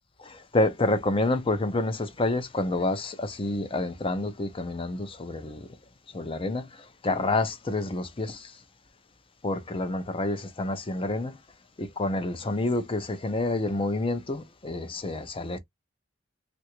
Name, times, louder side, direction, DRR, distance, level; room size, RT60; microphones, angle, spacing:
voice 1, 0.2-5.7 6.1-6.7 7.0-8.5 9.4-11.4 11.8-15.6, left 2 dB, 25° left, 0.6 m, -28 dB
3.3 x 2.6 x 2.9 m
head